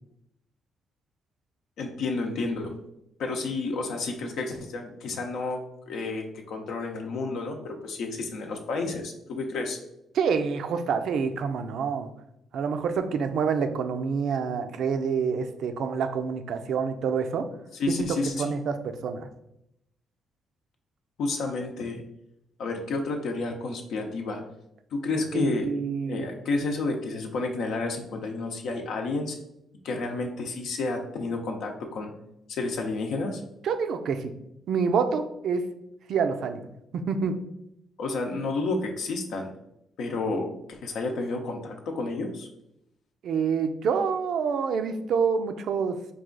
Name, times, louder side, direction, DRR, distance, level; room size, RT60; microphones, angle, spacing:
voice 1, 1.8-2.7 3.2-9.8 17.7-18.5 21.2-22.0 22.6-24.4 24.9-25.7 26.1-29.4 29.8-32.1 32.5-33.4 38.0-39.5 40.0-42.5, left 3 dB, 75° left, 2 dB, 0.7 m, -30 dB
voice 2, 10.1-12.1 12.5-17.4 18.0-18.1 18.4-19.3 25.3-26.3 33.6-34.3 34.7-35.6 36.1-36.7 36.9-37.4 43.2-46.0, right 6 dB, 70° right, 8 dB, 0.4 m, -27 dB
4.8 x 2.4 x 3.8 m, 0.81 s
cardioid pair, 90°, 0 cm